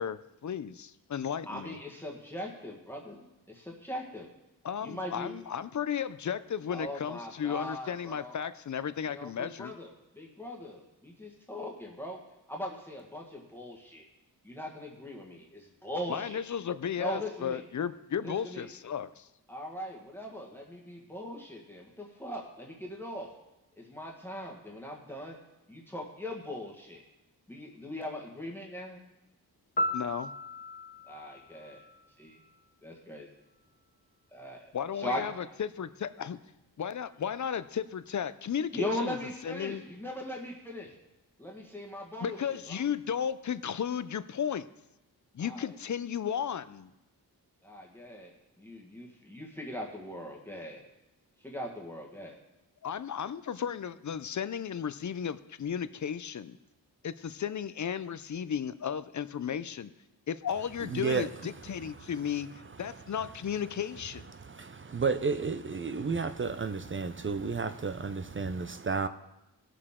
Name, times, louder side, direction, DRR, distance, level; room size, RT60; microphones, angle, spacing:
voice 1, 0.0-1.8 4.6-9.7 16.1-19.3 29.9-30.3 34.7-36.4 36.8-39.2 39.4-39.8 42.2-44.7 45.3-46.9 52.8-56.6 57.0-59.9 60.3-64.3, left 8 dB, 50° left, 14 dB, 0.5 m, -34 dB
voice 2, 1.5-4.3 4.8-5.3 6.7-8.4 9.1-12.2 12.5-14.1 14.4-16.4 17.0-17.6 18.2-18.7 19.5-23.3 23.8-25.4 25.7-27.0 27.5-29.0 31.1-31.8 32.2-32.4 32.8-33.3 34.3-34.7 35.0-35.3 38.7-40.9 41.4-42.8 45.4-45.7 47.6-50.9 51.4-52.4, left 1 dB, 5° left, -1 dB, 1.5 m, -40 dB
Piano, 29.8-32.7 40.8-41.0, left 1 dB, 25° left, 0.8 m, -36 dB
voice 3, 60.8-61.3 64.3-69.1, right 5 dB, 35° right, 11 dB, 0.5 m, -32 dB
18.0 x 6.7 x 3.7 m, 0.93 s
wide cardioid pair, 110°, 38 cm